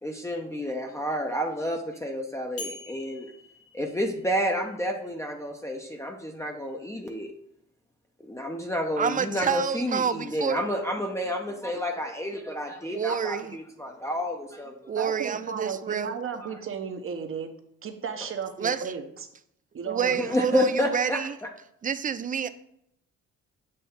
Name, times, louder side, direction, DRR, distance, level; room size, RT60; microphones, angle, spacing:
voice 1, 0.0-3.3 3.7-7.3 8.2-15.1 16.4-16.5 20.1-21.5, equal, 10° left, 0.7 m, -30 dB
sound 1, 2.6-4.6, left 2 dB, 50° left, 1.4 m, -43 dB
voice 2, 9.0-10.7 12.9-13.6 14.9-16.2 18.6-18.9 19.9-21.4 21.8-22.5, right 7 dB, 30° right, 0.4 m, -28 dB
voice 3, 15.0-17.5 17.8-19.1 19.7-20.3, right 6 dB, 45° right, 0.9 m, -34 dB
7.7 x 2.7 x 5.6 m
cardioid pair, 90°, 30 cm